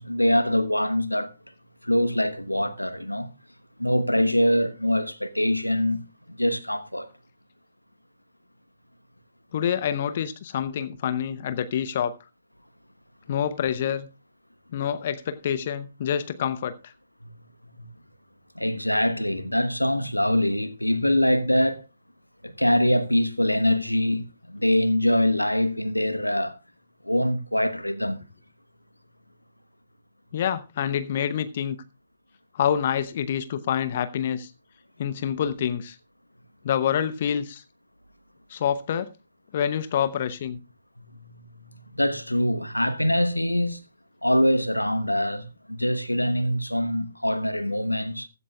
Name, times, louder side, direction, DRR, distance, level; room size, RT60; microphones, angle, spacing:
voice 1, 0.0-1.3 1.8-3.3 3.8-6.0 6.3-7.1 17.6-17.9 18.5-21.8 22.4-26.6 27.0-28.2 41.0-43.8 44.2-48.3, left 1 dB, 85° left, 1.2 m, -24 dB
voice 2, 9.5-12.1 13.3-14.1 14.7-16.9 30.3-31.8 32.5-34.5 35.0-36.0 36.6-37.6 38.5-39.1 39.5-40.6, left 9 dB, 40° left, 0.8 m, -27 dB
15.0 x 15.0 x 2.3 m
figure-of-eight pair, 130°, 0 cm